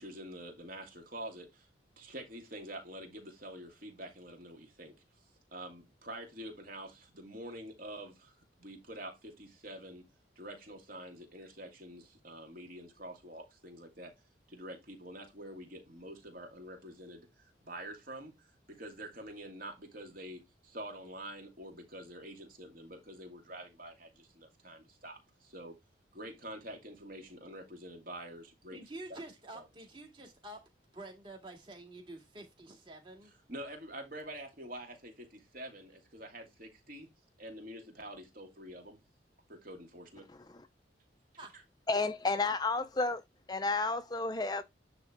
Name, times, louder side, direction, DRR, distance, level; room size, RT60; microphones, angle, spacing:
voice 1, 0.0-1.7 2.0-4.9 5.5-10.0 10.4-14.1 14.5-25.8 26.1-28.8 29.1-29.2 29.5-29.6 33.5-37.1 37.4-39.0 39.5-40.3, right 1 dB, 50° right, 2.5 m, -47 dB
voice 2, 28.7-30.6 30.9-33.3 41.4-41.5, right 2 dB, 25° right, 2.2 m, -48 dB
voice 3, 41.9-43.2 43.5-44.6, left 3 dB, 20° left, 0.4 m, -31 dB
9.8 x 3.5 x 4.4 m
head